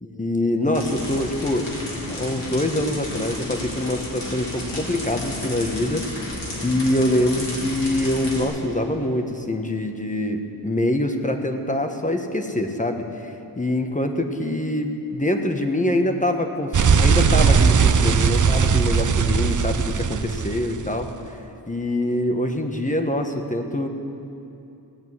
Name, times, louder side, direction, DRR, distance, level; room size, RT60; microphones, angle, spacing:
voice 1, 0.2-1.7 2.1-6.3 6.6-21.4 21.7-23.9, left 1 dB, 20° left, 5 dB, 1.2 m, -24 dB
sound 1, 0.7-8.4, left 1 dB, 90° left, 3.4 m, -32 dB
sound 2, 16.7-21.1, right 5 dB, 45° right, 0.6 m, -19 dB
17.0 x 8.1 x 9.4 m, 2.8 s
wide cardioid pair, 90°, 42 cm